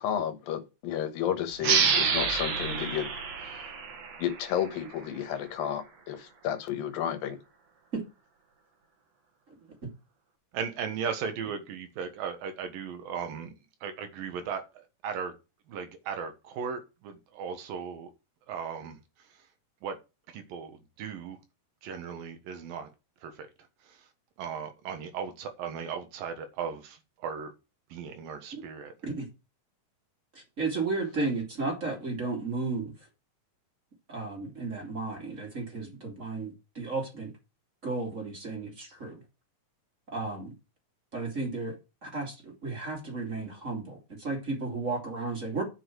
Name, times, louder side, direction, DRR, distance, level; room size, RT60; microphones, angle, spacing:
voice 1, 0.0-3.1 4.2-7.4, left 9 dB, 85° left, 3.0 m, -32 dB
sound 1, 1.6-4.9, right 5 dB, 55° right, 2.6 m, -28 dB
voice 2, 10.5-13.5 13.8-15.3 15.7-18.1 18.5-19.0 19.8-20.0 20.3-21.4 21.8-22.9 23.2-23.5 23.9-24.0 24.4-27.5 27.9-28.9, right 6 dB, 80° right, 3.1 m, -37 dB
voice 3, 30.3-32.9 34.1-37.3 37.8-39.2 40.1-40.5 41.1-45.6, right 3 dB, 25° right, 2.7 m, -34 dB
10.0 x 6.3 x 4.7 m
omnidirectional pair, 4.0 m